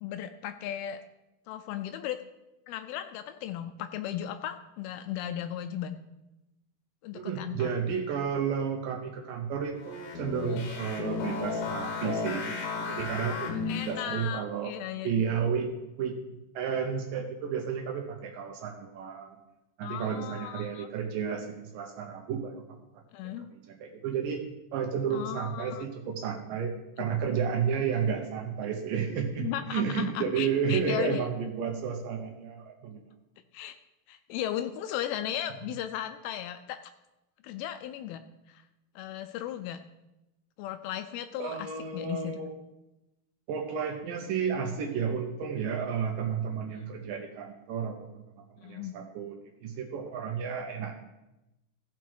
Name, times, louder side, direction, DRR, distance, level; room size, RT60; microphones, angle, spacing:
voice 1, 0.0-1.0 1.5-2.2 2.7-6.0 7.0-7.7 10.5-10.6 13.1-15.2 19.8-20.9 23.1-23.5 25.1-25.9 29.4-31.2 33.5-33.8 34.1-36.8 37.4-38.2 38.5-38.6 39.0-39.8 40.6-42.4 46.7-46.8 48.6-48.9, left 11 dB, 85° left, 9 dB, 2.2 m, -36 dB
voice 2, 7.1-13.6 13.9-14.7 15.0-19.4 19.8-22.8 23.5-24.4 24.7-33.0 41.4-42.5 43.5-49.4 49.6-50.9, right 7 dB, 70° right, 3 dB, 2.2 m, -32 dB
sound 1, 9.8-14.3, left 5 dB, 65° left, 3.1 m, -34 dB
15.0 x 6.0 x 4.7 m, 0.96 s
omnidirectional pair, 4.8 m